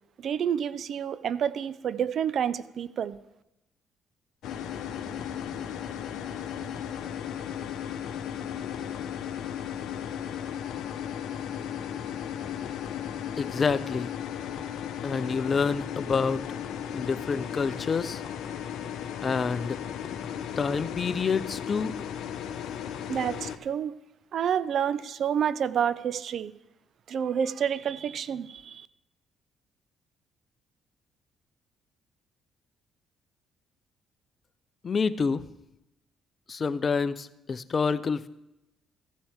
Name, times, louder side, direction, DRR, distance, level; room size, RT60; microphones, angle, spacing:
voice 1, 0.2-3.2 23.1-24.0 24.3-26.5 27.1-28.9, right 8 dB, 60° right, 17 dB, 0.5 m, -29 dB
sound 1, 4.4-23.6, left 9 dB, 70° left, 0.8 m, -35 dB
voice 2, 13.4-14.1 15.0-16.4 16.9-18.2 19.2-19.8 20.6-21.9 34.8-35.5 36.5-38.3, left 5 dB, 45° left, 14 dB, 0.6 m, -27 dB
14.5 x 8.8 x 3.6 m, 0.92 s
hypercardioid pair, 55°, 0 cm